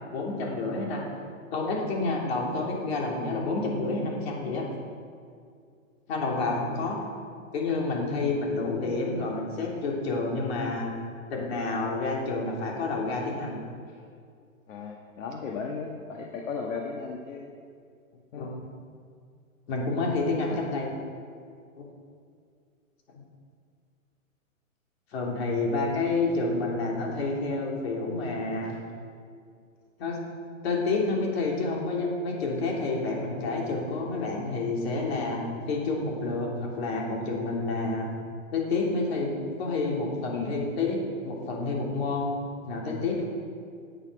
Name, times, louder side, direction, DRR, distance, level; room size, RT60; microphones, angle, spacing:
voice 1, 0.1-1.0 1.5-4.6 6.1-7.0 7.5-10.9 11.3-13.6 18.3-18.6 19.7-20.9 21.8-21.9 23.1-23.2 25.1-28.8 30.0-30.2 30.6-35.4 35.7-38.1 38.5-41.0 41.2-42.3 42.6-43.2, left 3 dB, 45° left, -2 dB, 3.2 m, -29 dB
voice 2, 14.7-17.5 18.3-18.5 20.5-20.6 40.3-40.5, left 5 dB, 65° left, 1 dB, 1.5 m, -35 dB
17.0 x 8.9 x 5.0 m, 2.3 s
hypercardioid pair, 165°, 42 cm